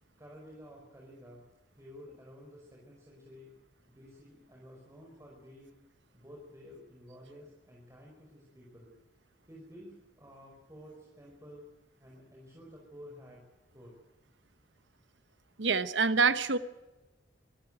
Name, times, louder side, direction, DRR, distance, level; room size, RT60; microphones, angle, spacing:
voice 1, 0.2-1.4 1.8-3.5 3.9-5.8 6.1-8.9 9.5-11.7 12.0-13.4 13.7-14.0, equal, 15° right, -2 dB, 5.3 m, -52 dB
voice 2, 15.6-16.6, right 5 dB, 70° right, 13 dB, 1.0 m, -26 dB
24.0 x 14.0 x 9.2 m, 1.1 s
head